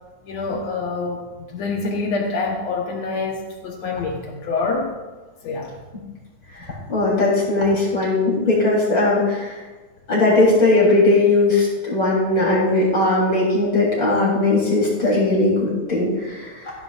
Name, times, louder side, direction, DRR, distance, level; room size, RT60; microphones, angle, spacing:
voice 1, 0.2-4.9 5.4-5.7, left 3 dB, 65° left, 1 dB, 1.8 m, -26 dB
voice 2, 6.6-9.6 10.1-16.7, left 2 dB, 30° left, -5 dB, 3.8 m, -19 dB
15.5 x 12.0 x 2.5 m, 1.3 s
omnidirectional pair, 4.4 m